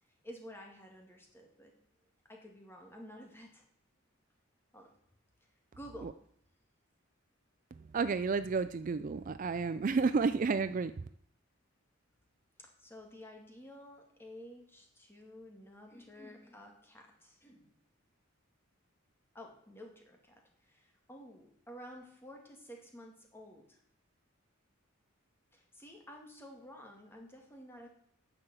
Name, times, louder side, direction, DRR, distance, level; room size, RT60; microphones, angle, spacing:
voice 1, 0.0-1.8 2.2-3.6 4.7-5.0 5.7-6.2 12.6-17.7 19.3-23.8 25.5-27.9, equal, 10° left, 2 dB, 2.1 m, -52 dB
voice 2, 7.9-10.9, right 4 dB, 40° right, 12 dB, 0.4 m, -31 dB
9.8 x 6.8 x 7.4 m, 0.65 s
head